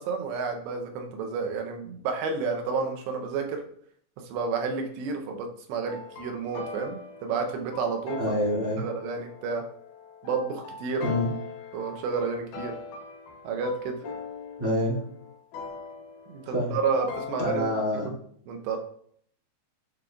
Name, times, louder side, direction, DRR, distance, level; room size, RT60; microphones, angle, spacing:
voice 1, 0.0-3.6 4.3-8.2 8.8-9.6 10.2-11.1 11.7-12.8 13.4-14.0 16.3-17.7 18.5-18.8, right 5 dB, 90° right, 4 dB, 3.0 m, -30 dB
sound 1, 5.9-17.7, left 5 dB, 80° left, 1.9 m, -41 dB
voice 2, 8.2-8.8 11.0-11.3 14.6-15.0 16.4-16.7 17.4-18.1, left 1 dB, 5° right, -8 dB, 1.0 m, -26 dB
10.5 x 3.8 x 2.4 m, 0.62 s
omnidirectional pair, 4.8 m